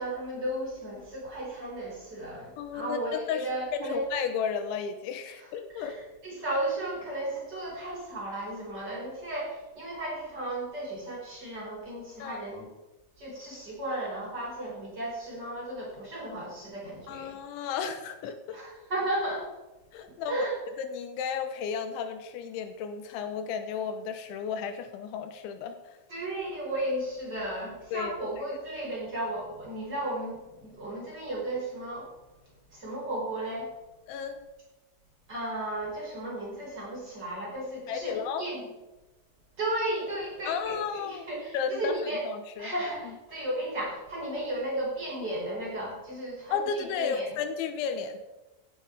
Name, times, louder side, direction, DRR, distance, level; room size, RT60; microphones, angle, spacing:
voice 1, 0.0-4.0 5.7-12.7 13.2-17.4 18.5-19.5 20.3-20.5 26.1-32.1 32.7-33.7 35.3-38.6 39.6-40.8 41.0-42.2 42.6-47.3, right 1 dB, 20° right, -5 dB, 5.5 m, -34 dB
voice 2, 2.6-6.0 12.2-12.4 17.1-18.6 19.9-20.5 20.8-26.0 27.9-28.1 34.1-34.5 37.9-38.5 40.5-41.3 41.5-42.0 42.2-42.7 43.0-43.2 46.5-48.2, left 6 dB, 85° left, 8 dB, 3.2 m, -33 dB
16.0 x 8.9 x 4.9 m, 1.1 s
omnidirectional pair, 5.4 m